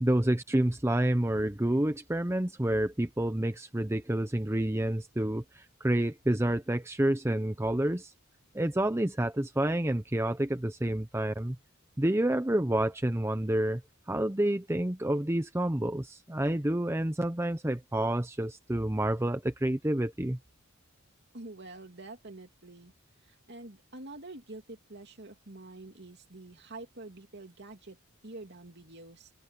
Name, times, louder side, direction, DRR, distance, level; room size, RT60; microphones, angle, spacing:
voice 1, 0.0-8.1 8.5-11.6 12.0-13.8 14.1-20.4, right 1 dB, 10° right, 0.7 m, -29 dB
voice 2, 21.3-22.9 23.2-29.3, right 2 dB, 50° right, 2.9 m, -47 dB
head